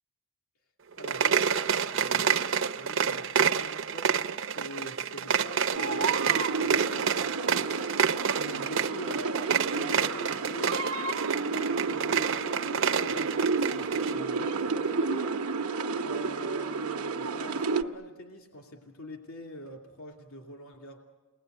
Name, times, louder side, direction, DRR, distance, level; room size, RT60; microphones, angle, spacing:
voice 1, 0.9-7.1 8.3-9.4 9.7-11.3 11.9-15.4 16.0-21.0, equal, 75° left, 1 dB, 2.7 m, -45 dB
sound 1, 0.9-14.2, right 7 dB, 60° right, 0.7 m, -28 dB
sound 2, 5.7-17.8, right 4 dB, 85° right, 1.0 m, -31 dB
29.0 x 21.0 x 8.0 m, 1.2 s
head